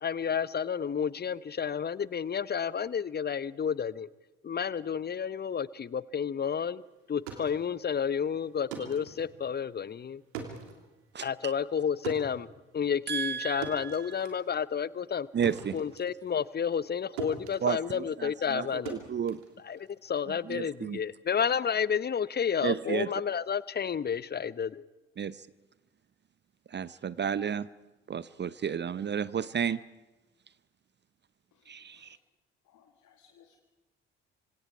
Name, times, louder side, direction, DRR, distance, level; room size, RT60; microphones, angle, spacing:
voice 1, 0.0-4.1 4.4-6.8 7.1-10.2 11.2-15.3 15.7-19.0 19.7-24.8, left 7 dB, 30° left, 20 dB, 0.8 m, -31 dB
sound 1, 7.0-16.9 17.2-20.1, right 6 dB, 70° right, 3.1 m, -44 dB
voice 2, 11.1-11.5 13.1-14.3 15.3-15.8 17.6-19.4 20.4-21.0 22.6-23.1 25.2-25.5 26.7-27.7 28.1-29.8 31.7-32.2, right 7 dB, 30° right, 18 dB, 0.7 m, -32 dB
voice 3, 31.5-32.2 32.7-33.6, left 8 dB, 55° left, 4 dB, 2.0 m, -63 dB
27.0 x 26.0 x 4.8 m, 1.1 s
figure-of-eight pair, 45°, 35 cm